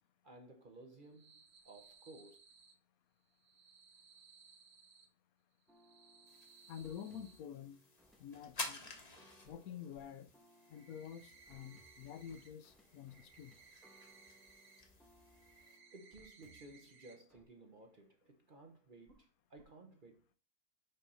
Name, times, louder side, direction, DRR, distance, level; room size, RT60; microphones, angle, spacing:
voice 1, 0.2-2.4 15.9-20.3, right 2 dB, 40° right, 0.9 m, -57 dB
sound 1, 0.9-2.7 3.3-5.1 5.6-7.4 9.4-9.5 9.9-10.0 10.5-12.5 12.8-14.8 15.2-17.1 17.5-17.6 18.0-18.1 19.1-19.2 19.6-19.7, right 5 dB, 55° right, 1.5 m, -63 dB
sound 2, 5.7-16.9 17.3-17.4, equal, ahead, 1.1 m, -68 dB
sound 3, 6.3-15.8, left 3 dB, 30° left, 1.1 m, -52 dB
voice 2, 6.7-7.8 8.2-8.8 9.4-10.3 10.7-13.5, left 9 dB, 75° left, 1.0 m, -49 dB
5.5 x 4.0 x 5.5 m
omnidirectional pair, 1.6 m